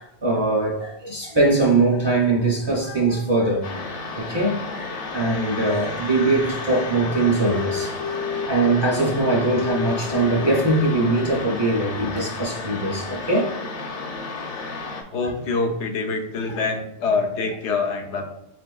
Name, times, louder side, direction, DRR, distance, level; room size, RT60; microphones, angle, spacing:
voice 1, 0.0-3.7 4.2-7.9 8.5-13.5, right 2 dB, 30° right, 0.5 m, -21 dB
Old Radio Tuning Wave, 3.6-15.0, left 4 dB, 50° left, 0.4 m, -31 dB
voice 2, 15.1-18.3, left 4 dB, 85° left, 0.9 m, -25 dB
6.5 x 2.5 x 2.3 m
omnidirectional pair, 1.1 m